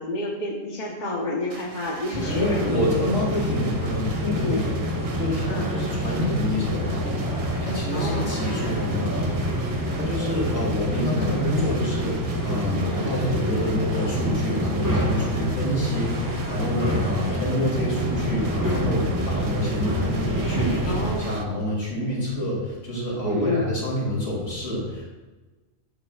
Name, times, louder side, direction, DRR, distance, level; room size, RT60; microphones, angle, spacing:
voice 1, 0.0-2.8 4.4-4.7 5.5-5.7 7.9-8.3 20.9-21.3 23.2-23.7, left 1 dB, 35° left, -2 dB, 1.3 m, -29 dB
sound 1, 1.5-21.4, right 4 dB, 40° right, 0.5 m, -42 dB
sound 2, 2.1-21.1, equal, 15° right, 1.5 m, -27 dB
voice 2, 2.3-4.7 5.1-25.1, left 1 dB, 65° left, -4 dB, 3.4 m, -27 dB
sound 3, 5.5-15.4, right 5 dB, 60° right, 0.9 m, -43 dB
13.0 x 7.7 x 2.5 m, 1.2 s
omnidirectional pair, 1.3 m